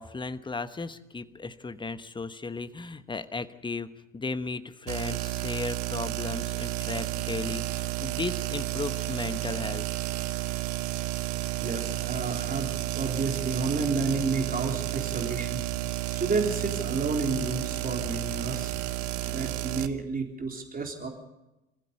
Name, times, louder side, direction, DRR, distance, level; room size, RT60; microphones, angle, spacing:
voice 1, 0.0-9.9, left 3 dB, 10° left, 12 dB, 1.2 m, -35 dB
sound 1, 4.9-19.9, right 14 dB, 55° right, 1.3 m, -32 dB
voice 2, 11.6-15.6 16.1-18.7 19.0-21.1, right 4 dB, 20° right, 2 dB, 3.7 m, -31 dB
27.5 x 15.5 x 7.1 m, 0.97 s
figure-of-eight pair, 75°, 39 cm